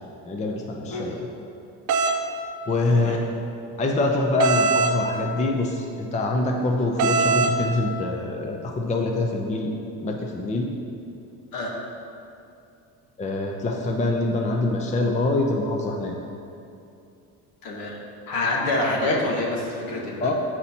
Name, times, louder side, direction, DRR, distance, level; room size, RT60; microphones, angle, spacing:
voice 1, 0.3-1.2 2.7-3.2 3.8-9.7 10.0-10.7 13.2-16.2 20.2-20.3, left 2 dB, 20° left, 1 dB, 0.5 m, -24 dB
sound 1, 1.9-2.2 4.4-5.0 7.0-7.5, right 4 dB, 55° right, 0.6 m, -21 dB
voice 2, 17.6-18.0 18.3-20.3, left 2 dB, 65° left, -1 dB, 1.3 m, -26 dB
6.8 x 4.2 x 4.3 m, 2.6 s
cardioid pair, 110°, 36 cm